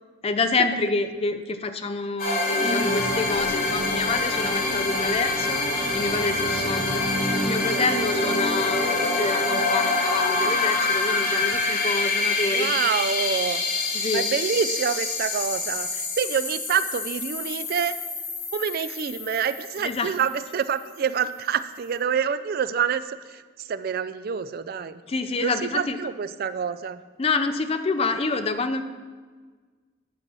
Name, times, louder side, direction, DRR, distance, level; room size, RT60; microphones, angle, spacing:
voice 1, 0.2-12.7 13.9-14.3 19.8-20.1 25.1-26.0 27.2-28.8, left 3 dB, 30° left, 9 dB, 0.4 m, -27 dB
sound 1, 2.2-20.7, left 2 dB, 45° left, 2.0 m, -26 dB
voice 2, 12.5-13.6 14.1-18.0 18.5-25.0 25.4-27.0, right 7 dB, 50° right, 13 dB, 0.3 m, -27 dB
9.4 x 4.3 x 6.1 m, 1.4 s
head